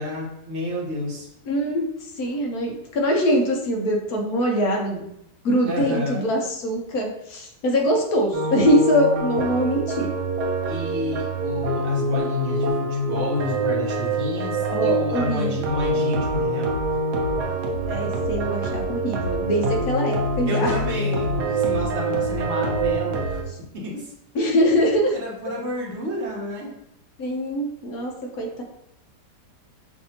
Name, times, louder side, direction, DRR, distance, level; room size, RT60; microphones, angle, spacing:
voice 1, 0.0-1.3 5.6-6.2 10.7-16.7 20.5-23.4 23.7-24.5 25.1-26.7, left 1 dB, 45° right, -3 dB, 1.2 m, -30 dB
voice 2, 1.5-5.1 5.4-10.1 14.7-15.6 17.8-20.8 24.3-25.2 27.2-28.6, equal, 65° left, 1 dB, 1.1 m, -23 dB
sound 1, 8.3-23.4, right 2 dB, 70° right, 1.2 m, -25 dB
6.0 x 2.7 x 2.8 m, 0.78 s
omnidirectional pair, 1.9 m